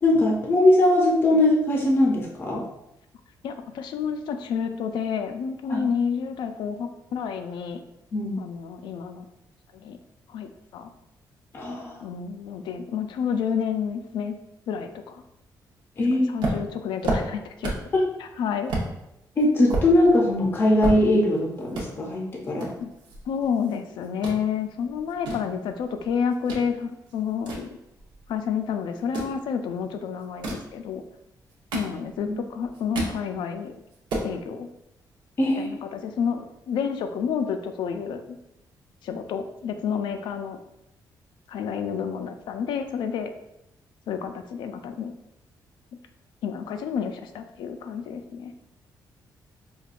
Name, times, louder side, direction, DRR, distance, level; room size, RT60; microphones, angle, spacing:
voice 1, 0.0-2.6 5.7-5.8 8.1-8.4 11.5-12.0 16.0-16.3 19.4-22.7 32.2-32.4 35.4-35.7, left 1 dB, 30° left, -1 dB, 0.5 m, -21 dB
voice 2, 3.4-7.8 8.4-9.3 9.7-10.0 10.3-10.9 12.0-14.3 14.7-15.2 16.0-17.7 18.2-18.7 22.8-22.9 23.3-27.8 28.3-31.0 31.7-33.8 34.2-34.7 35.6-38.4 39.0-40.6 41.5-43.3 44.1-45.1 46.4-48.5, left 7 dB, 85° left, 7 dB, 0.4 m, -30 dB
sound 1, 16.4-18.0 18.3-18.4 18.7-18.9 19.4-21.4 21.7-21.9 22.6-23.8 24.0-24.4 25.0-26.7 27.1-28.4 29.0-29.4 30.2-30.7 31.3-32.3 32.6-33.2 33.6-33.7 33.9-34.3, right 2 dB, 90° right, 0.8 m, -30 dB
5.1 x 2.2 x 2.4 m, 0.86 s
cardioid pair, 160°, 8 cm